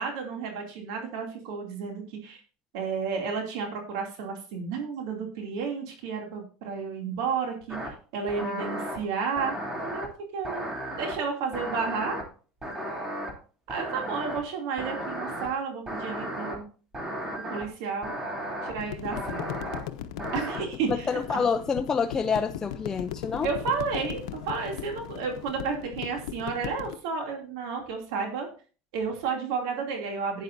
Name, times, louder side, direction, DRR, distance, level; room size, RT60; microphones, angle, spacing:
voice 1, 0.0-2.4 2.7-9.5 9.8-10.6 11.0-12.2 13.7-16.7 17.5-18.1 18.6-19.5 20.3-21.4 23.4-28.5 28.9-30.4, right 5 dB, 80° right, 2 dB, 2.8 m, -32 dB
sound 1, 7.7-7.9 8.3-9.0 9.4-10.1 10.4-11.1 11.5-12.2 12.6-13.3 13.7-14.4 14.8-15.5 15.9-16.6 16.9-17.6 18.0-18.7 19.1-19.8 20.2-20.6, equal, 20° right, 3.1 m, -34 dB
sound 2, 18.8-27.0, left 11 dB, 85° left, 0.8 m, -38 dB
voice 2, 20.9-23.5, left 5 dB, 20° left, 5 dB, 0.6 m, -27 dB
12.0 x 9.3 x 2.7 m, 0.38 s
supercardioid pair, 120°, 3 cm